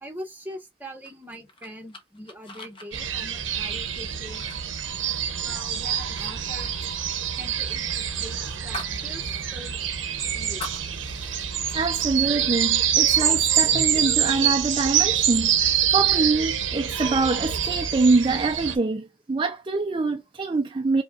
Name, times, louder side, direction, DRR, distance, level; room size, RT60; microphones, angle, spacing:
voice 1, 0.0-4.5 5.4-6.8 7.3-9.8 10.3-10.8, equal, 10° right, 1.1 m, -42 dB
sound 1, 1.0-5.6 6.0-6.3 6.6-9.0 9.4-9.5 9.9-11.5, left 1 dB, 25° left, 0.8 m, -42 dB
sound 2, 2.9-18.8, right 9 dB, 90° right, 0.8 m, -25 dB
voice 2, 11.7-21.0, right 3 dB, 25° right, 0.4 m, -25 dB
5.0 x 2.2 x 2.4 m
head